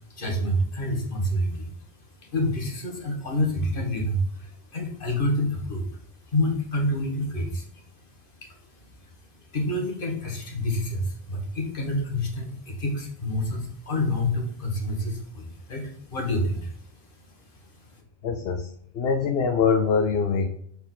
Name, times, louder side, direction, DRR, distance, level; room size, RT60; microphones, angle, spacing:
voice 1, 0.1-1.7 2.3-5.9 6.3-7.8 8.4-8.5 9.0-9.1 9.5-16.8 17.5-17.7, left 1 dB, 55° left, 0 dB, 1.7 m, -28 dB
voice 2, 18.2-20.5, left 5 dB, 75° left, 6 dB, 0.9 m, -24 dB
6.6 x 4.5 x 3.9 m, 0.66 s
omnidirectional pair, 1.0 m